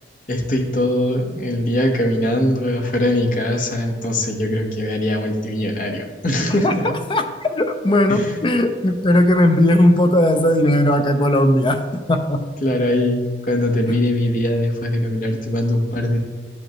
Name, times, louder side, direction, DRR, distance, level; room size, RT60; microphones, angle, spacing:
voice 1, 0.3-6.9 8.1-8.3 12.6-16.2, left 1 dB, 45° left, 1 dB, 1.0 m, -21 dB
voice 2, 6.6-12.4 13.9-14.0, left 1 dB, 25° left, 7 dB, 0.4 m, -17 dB
11.5 x 5.3 x 3.0 m, 1.4 s
head